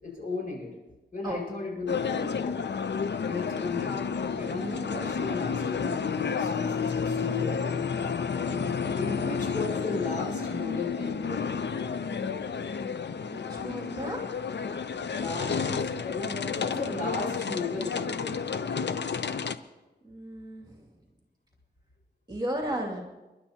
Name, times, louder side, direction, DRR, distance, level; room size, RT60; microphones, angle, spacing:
voice 1, 0.0-0.8 1.1-2.6 3.2-7.8 8.7-11.5 15.1-18.4, left 3 dB, 50° left, -4 dB, 5.3 m, -35 dB
sound 1, 1.9-19.6, left 6 dB, 80° left, 0.6 m, -31 dB
voice 2, 8.5-9.2 13.3-14.2 20.0-20.8 22.3-23.0, right 1 dB, 25° right, -2 dB, 2.4 m, -35 dB
28.0 x 11.5 x 2.9 m, 1.1 s
wide cardioid pair, 110°, 18 cm